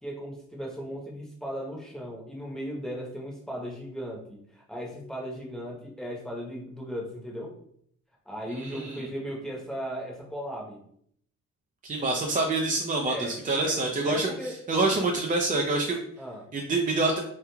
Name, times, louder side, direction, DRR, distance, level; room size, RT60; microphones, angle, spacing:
voice 1, 0.0-7.5 8.3-10.8 13.1-13.3 13.6-13.8 14.1-14.6 16.2-16.4, equal, ahead, -2 dB, 0.9 m, -37 dB
voice 2, 8.5-9.1 11.8-14.3 14.7-16.0 16.5-17.2, right 2 dB, 25° right, 1 dB, 0.4 m, -26 dB
3.1 x 2.2 x 2.3 m, 0.67 s
supercardioid pair, 55°, 35 cm